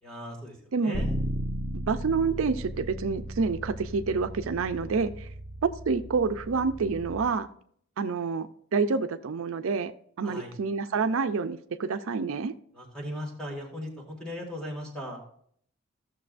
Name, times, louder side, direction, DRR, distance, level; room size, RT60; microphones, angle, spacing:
voice 1, 0.0-1.2 10.2-10.5 12.7-15.2, left 1 dB, 5° left, -1 dB, 1.9 m, -38 dB
Bass guitar, 0.9-7.2, right 1 dB, 15° right, 1.2 m, -36 dB
voice 2, 1.9-5.3 5.6-7.5 8.0-9.9 10.2-12.5, right 4 dB, 75° right, 10 dB, 0.4 m, -28 dB
15.0 x 6.6 x 2.5 m, 0.63 s
head